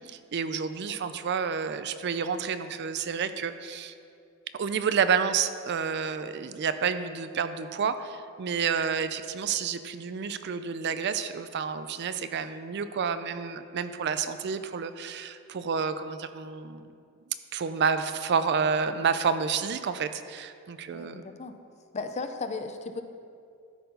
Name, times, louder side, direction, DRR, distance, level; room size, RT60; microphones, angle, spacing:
voice 1, 0.0-3.9 4.5-16.9 17.5-21.3, right 6 dB, 50° right, 11 dB, 0.4 m, -29 dB
voice 2, 20.9-21.5 21.9-23.0, left 3 dB, 30° left, 8 dB, 0.5 m, -35 dB
13.0 x 4.6 x 5.3 m, 2.4 s
head